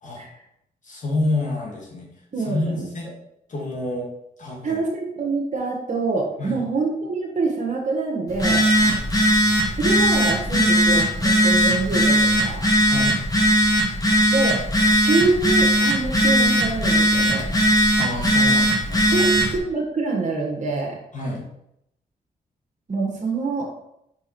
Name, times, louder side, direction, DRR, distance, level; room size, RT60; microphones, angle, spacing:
voice 1, 0.8-2.1 2.4-3.1 3.5-4.1 4.4-4.8 6.4-6.6 8.8-9.0 12.8-13.1 18.0-19.3 21.1-21.4, left 2 dB, 50° left, -2 dB, 2.4 m, -28 dB
voice 2, 2.3-3.2 4.6-8.6 9.7-12.6 14.3-14.6 15.0-17.5 19.1-21.0 22.9-23.8, right 3 dB, 50° right, -2 dB, 1.3 m, -25 dB
Telephone, 8.3-19.6, equal, 25° left, 2.0 m, -19 dB
5.0 x 4.6 x 4.5 m, 0.78 s
cardioid pair, 65°, 16 cm